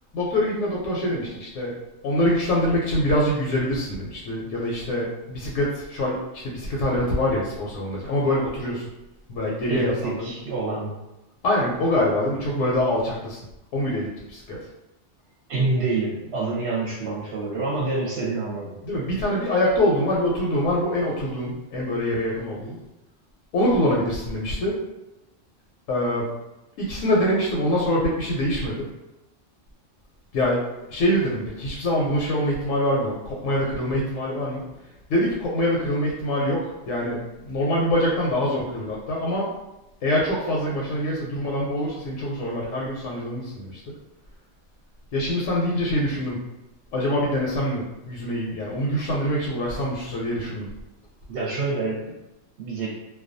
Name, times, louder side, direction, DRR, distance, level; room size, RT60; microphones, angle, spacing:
voice 1, 0.1-1.8 2.0-8.9 9.3-10.3 11.4-13.4 13.7-14.6 18.8-22.8 23.5-24.8 25.9-26.3 26.8-28.9 30.3-34.6 35.1-39.5 40.0-44.0 45.1-46.4 46.9-50.7, left 1 dB, 80° left, -4 dB, 0.9 m, -24 dB
voice 2, 9.7-10.9 15.5-18.8 51.3-52.1 52.6-52.9, right 3 dB, 65° right, -5 dB, 0.8 m, -27 dB
2.3 x 2.2 x 2.5 m, 0.96 s
omnidirectional pair, 1.3 m